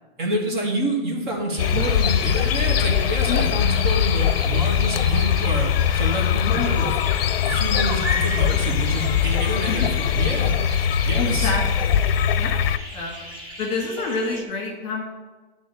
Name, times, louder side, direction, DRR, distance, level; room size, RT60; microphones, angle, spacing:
voice 1, 0.2-6.9 7.4-10.5 11.0-11.6, right 1 dB, 55° right, 0 dB, 2.0 m, -27 dB
sound 1, 1.5-14.4, equal, 15° right, 0.7 m, -35 dB
sound 2, 1.6-12.8, left 9 dB, 75° left, 0.4 m, -21 dB
voice 2, 11.2-12.0 12.3-12.6 12.9-13.2 13.6-15.0, left 4 dB, 20° left, -2 dB, 1.7 m, -28 dB
10.0 x 3.7 x 6.9 m, 1.3 s
supercardioid pair, 175°, 30 cm